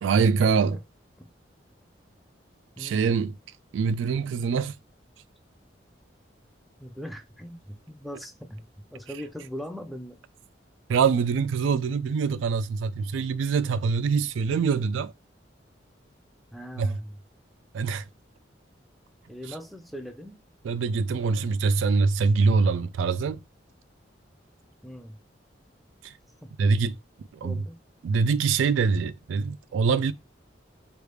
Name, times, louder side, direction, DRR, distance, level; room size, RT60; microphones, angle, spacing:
voice 1, 0.0-0.8 2.8-3.4 3.7-4.8 10.9-15.1 16.8-17.0 17.7-18.0 20.6-23.4 26.0-26.1 26.6-26.9 27.4-27.6 28.0-30.1, right 5 dB, 90° right, 0.3 m, -24 dB
voice 2, 6.8-10.2 16.5-17.2 19.3-20.4 24.8-25.2 26.4-26.5 27.4-27.8, equal, ahead, 0.4 m, -40 dB
3.3 x 2.4 x 3.2 m
head